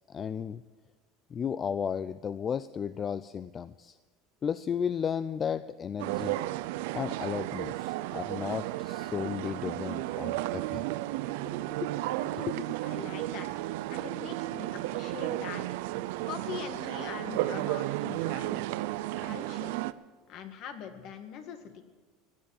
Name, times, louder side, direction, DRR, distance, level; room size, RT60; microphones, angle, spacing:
voice 1, 0.1-0.6 1.3-4.0 4.4-6.4 6.9-10.9 11.5-11.9 12.2-12.7, left 7 dB, 25° left, 15 dB, 0.4 m, -34 dB
sound 1, 6.0-19.9, right 16 dB, 75° right, 0.5 m, -33 dB
voice 2, 12.8-13.5 13.9-15.8 16.2-18.6 19.2-19.7 20.3-21.8, left 7 dB, 50° left, 7 dB, 1.8 m, -42 dB
17.0 x 10.5 x 7.1 m, 1.4 s
supercardioid pair, 150°, 0 cm